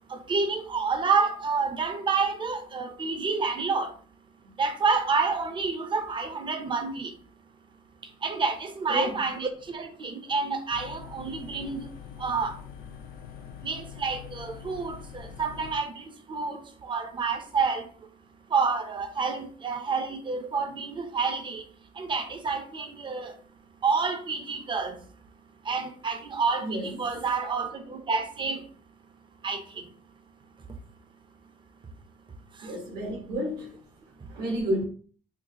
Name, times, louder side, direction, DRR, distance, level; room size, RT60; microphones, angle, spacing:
voice 1, 0.1-4.0 4.6-7.1 8.0-12.6 13.6-18.1 18.5-21.7 21.9-23.4 23.8-25.1 25.6-28.7 29.4-29.9 30.7-30.8 32.5-32.7 34.2-34.4, right 4 dB, 30° right, 0.6 m, -29 dB
voice 2, 8.9-9.2 26.6-27.0 32.6-33.8 34.3-34.9, right 1 dB, 70° right, 1.3 m, -30 dB
sound 1, 10.7-15.8, left 8 dB, 65° left, 0.5 m, -44 dB
4.4 x 2.3 x 2.9 m
cardioid pair, 110°, 17 cm